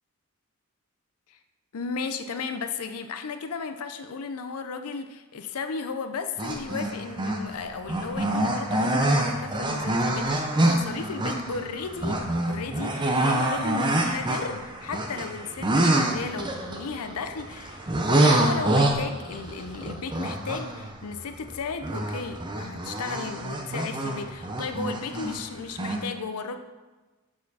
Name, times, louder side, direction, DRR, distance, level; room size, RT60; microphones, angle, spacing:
voice 1, 1.7-26.6, left 5 dB, 85° left, 8 dB, 0.5 m, -35 dB
sound 1, 6.4-7.5 7.9-21.5 21.8-25.4 25.8-26.0, right 1 dB, 20° right, 0.6 m, -26 dB
7.4 x 4.4 x 4.1 m, 1.2 s
head